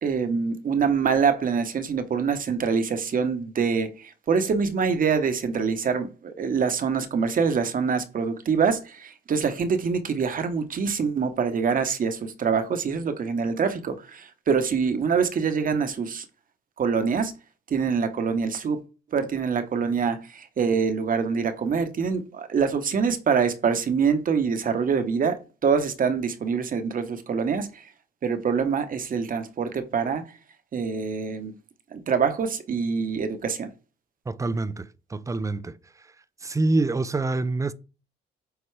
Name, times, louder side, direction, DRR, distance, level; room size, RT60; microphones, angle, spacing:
voice 1, 0.0-16.3 16.8-17.3 17.7-18.8 19.1-27.9 28.2-30.3 30.7-31.5 31.9-33.7, right 6 dB, 45° right, 1.1 m, -25 dB
voice 2, 34.3-35.8 36.4-37.7, right 2 dB, 15° right, 0.5 m, -26 dB
8.0 x 4.2 x 3.3 m
cardioid pair, 95°, 20 cm